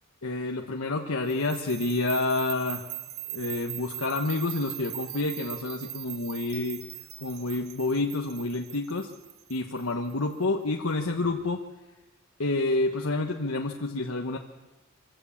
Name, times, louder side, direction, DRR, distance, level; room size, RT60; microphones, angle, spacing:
voice 1, 0.2-2.8 3.3-6.8 7.2-9.1 9.5-11.6 12.4-14.4, left 2 dB, 75° left, 2 dB, 1.3 m, -28 dB
sound 1, 1.3-10.3, right 14 dB, 75° right, 1.2 m, -40 dB
25.0 x 16.0 x 7.2 m, 1.1 s
head